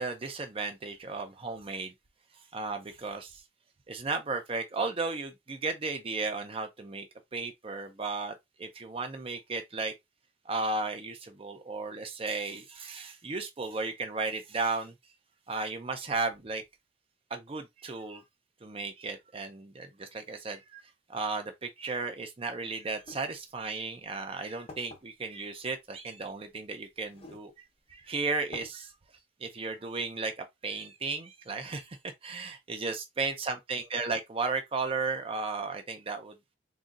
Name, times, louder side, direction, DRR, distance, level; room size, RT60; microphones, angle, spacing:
voice 1, 0.0-1.9 2.5-3.4 3.9-7.1 7.3-9.9 10.5-14.9 15.5-16.6 17.3-18.2 18.6-20.8 21.1-27.5 27.9-28.9 29.4-32.0 32.2-36.3, right 3 dB, 30° right, 0.5 m, -34 dB
sound 1, 23.0-23.2 24.0-24.1 24.7-25.0 26.2-26.3 27.1-27.5 27.9-28.0 28.5-28.7, left 2 dB, 35° left, 1.1 m, -46 dB
3.9 x 2.7 x 2.4 m
head